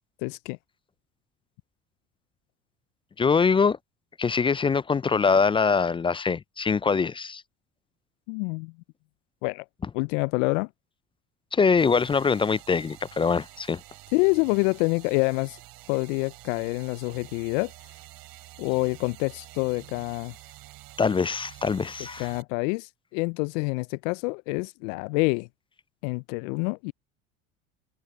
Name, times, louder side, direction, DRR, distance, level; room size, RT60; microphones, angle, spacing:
voice 1, 0.2-0.6 8.3-8.7 9.4-9.6 9.9-10.7 14.1-15.6 15.9-17.7 18.6-20.4 22.2-25.5 26.0-26.9, left 30 dB, 70° left, 0.5 m, -27 dB
voice 2, 3.2-3.8 4.2-7.4 11.5-13.8 21.0-22.3, left 5 dB, 15° left, 0.3 m, -23 dB
sound 1, 11.8-22.4, right 19 dB, 60° right, 5.9 m, -48 dB
hypercardioid pair, 75°, 39 cm